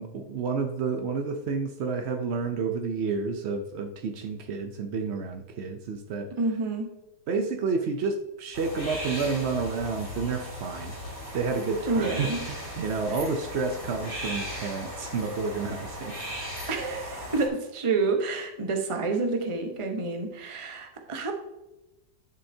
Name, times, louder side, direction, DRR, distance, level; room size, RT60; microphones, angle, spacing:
voice 1, 0.0-6.3 7.3-11.0 11.3-16.1, right 4 dB, 65° right, 5 dB, 0.6 m, -30 dB
voice 2, 6.4-6.9 11.8-12.4 13.1-13.3 16.7-21.3, right 3 dB, 25° right, 3 dB, 0.8 m, -28 dB
sound 1, 8.5-17.5, equal, 20° left, 2.5 m, -37 dB
10.5 x 6.9 x 2.7 m, 0.97 s
omnidirectional pair, 1.9 m